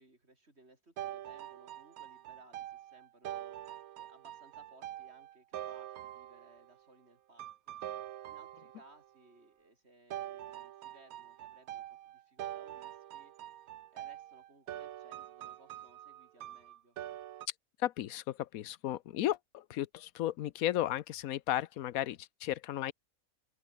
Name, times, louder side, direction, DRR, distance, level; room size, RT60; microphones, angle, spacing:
voice 1, 0.0-3.6 3.9-7.8 8.2-13.3 13.9-17.0, right 2 dB, 50° right, 5.4 m, -62 dB
sound 1, 1.0-6.7 7.4-9.0 10.1-17.5, right 12 dB, 90° right, 1.2 m, -45 dB
voice 2, 17.8-22.9, left 13 dB, 80° left, 1.1 m, -34 dB
open air
omnidirectional pair, 1.5 m